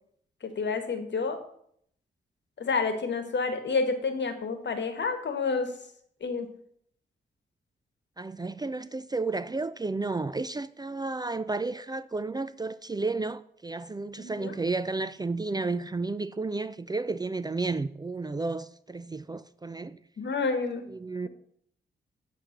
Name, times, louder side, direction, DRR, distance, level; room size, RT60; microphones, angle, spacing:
voice 1, 0.4-1.4 2.6-5.7 6.2-6.5 14.2-14.5 20.2-20.9, left 4 dB, 65° left, 1.2 m, -29 dB
voice 2, 8.2-20.0 20.9-21.3, right 3 dB, 20° right, 0.4 m, -32 dB
8.0 x 3.3 x 6.4 m
supercardioid pair, 45°, 20 cm